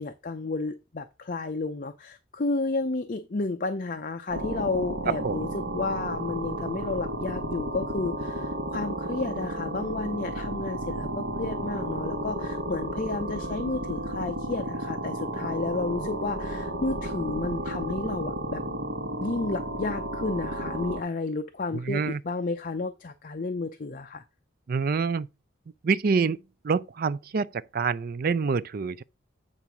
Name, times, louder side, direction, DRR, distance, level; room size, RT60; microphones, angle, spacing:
voice 1, 0.0-18.6 19.2-24.2, left 3 dB, 45° left, 0.6 m, -32 dB
sound 1, 4.3-21.0, right 1 dB, 75° right, 1.4 m, -33 dB
voice 2, 5.1-5.4 21.7-22.2 24.7-25.3 25.8-26.4 26.6-29.0, right 5 dB, 50° right, 0.4 m, -26 dB
8.6 x 3.9 x 5.9 m
head